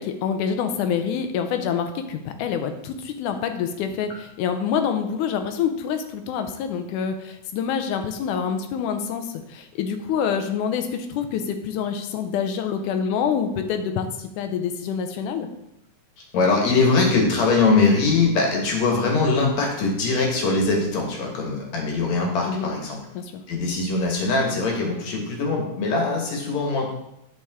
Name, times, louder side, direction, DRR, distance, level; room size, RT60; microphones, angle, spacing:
voice 1, 0.0-4.1 4.4-14.1 14.4-15.5 22.5-22.7 23.2-23.3, left 7 dB, 90° left, 7 dB, 2.2 m, -26 dB
voice 2, 16.3-23.0 23.5-26.9, left 3 dB, 65° left, 0 dB, 2.7 m, -22 dB
9.6 x 5.6 x 3.6 m, 0.84 s
omnidirectional pair, 3.5 m